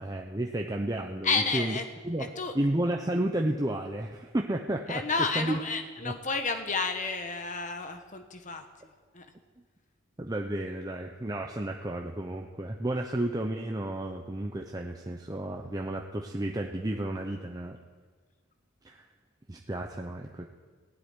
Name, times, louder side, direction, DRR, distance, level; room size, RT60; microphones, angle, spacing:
voice 1, 0.0-1.8 2.1-2.3 2.5-5.0 5.4-5.6 6.0-6.1 10.2-17.8 18.8-19.1 19.5-20.4, right 1 dB, 20° right, 2 dB, 0.8 m, -32 dB
voice 2, 1.2-1.8 2.2-2.5 4.9-9.3, left 4 dB, 40° left, 6 dB, 1.3 m, -31 dB
15.5 x 8.0 x 9.7 m, 1.4 s
head